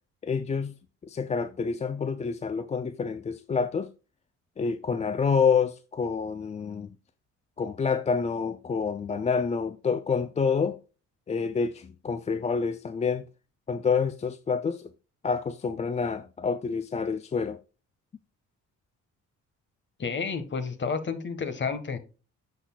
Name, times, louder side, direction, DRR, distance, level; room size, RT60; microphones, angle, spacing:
voice 1, 0.2-0.7 1.0-3.9 4.6-7.0 7.6-10.8 11.3-13.2 13.7-14.9 15.2-17.6, left 5 dB, 25° left, 0.4 m, -28 dB
voice 2, 20.0-22.0, left 5 dB, 40° left, 1.3 m, -30 dB
11.0 x 4.2 x 2.2 m
cardioid pair, 90°, 30 cm